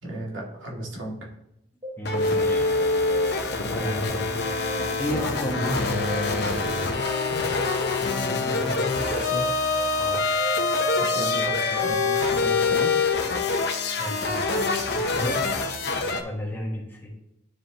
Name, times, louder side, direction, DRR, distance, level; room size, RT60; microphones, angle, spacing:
voice 1, 0.0-1.3 8.2-8.9 9.1-9.5 11.0-12.9, right 1 dB, 80° right, -3 dB, 2.1 m, -35 dB
sound 1, 1.8-12.0, right 2 dB, 25° right, 2.5 m, -41 dB
sound 2, 2.0-16.2, left 3 dB, 55° left, 0.9 m, -25 dB
voice 2, 2.0-2.7 3.6-4.2 5.0-6.4 9.9-10.2 14.0-14.5 14.9-15.4 16.2-17.1, equal, 10° left, -2 dB, 1.4 m, -32 dB
12.0 x 4.9 x 2.9 m, 0.82 s
head